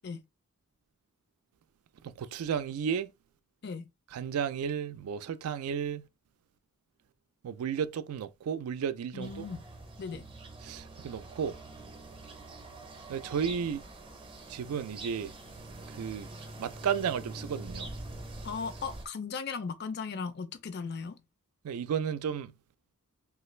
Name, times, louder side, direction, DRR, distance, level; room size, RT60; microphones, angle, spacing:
voice 1, 2.0-3.1 4.1-6.1 7.4-9.5 10.6-11.6 13.1-13.8 14.5-15.3 16.0-16.3 16.6-17.9 21.6-22.5, right 7 dB, 80° right, 0.3 m, -33 dB
voice 2, 9.1-9.6 10.0-10.3 18.4-21.2, left 5 dB, 50° left, 0.4 m, -37 dB
sound 1, 9.2-19.1, right 2 dB, 25° right, 0.5 m, -45 dB
3.1 x 2.4 x 3.1 m
head